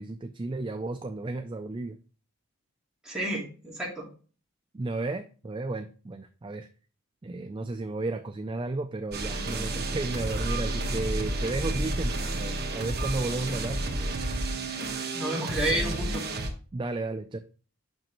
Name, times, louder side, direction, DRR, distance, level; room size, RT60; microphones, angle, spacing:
voice 1, 0.0-2.0 4.7-6.7 7.2-13.8 16.7-17.4, right 2 dB, 20° right, 7 dB, 0.3 m, -33 dB
voice 2, 3.0-4.1 15.1-16.2, right 1 dB, 5° right, -4 dB, 2.2 m, -30 dB
sound 1, 9.1-16.5, right 2 dB, 45° right, 1.2 m, -31 dB
7.5 x 5.7 x 3.0 m, 0.38 s
head